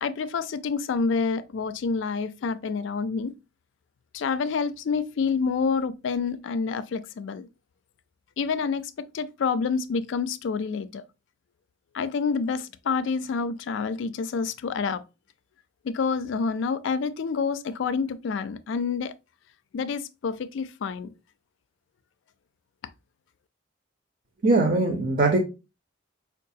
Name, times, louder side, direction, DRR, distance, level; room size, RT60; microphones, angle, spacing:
voice 1, 0.0-3.3 4.1-7.5 8.4-11.0 11.9-15.0 15.9-19.1 19.7-21.1, left 5 dB, 70° left, 0.3 m, -28 dB
voice 2, 24.4-25.4, right 2 dB, 45° right, 0.6 m, -21 dB
4.6 x 2.3 x 2.7 m
head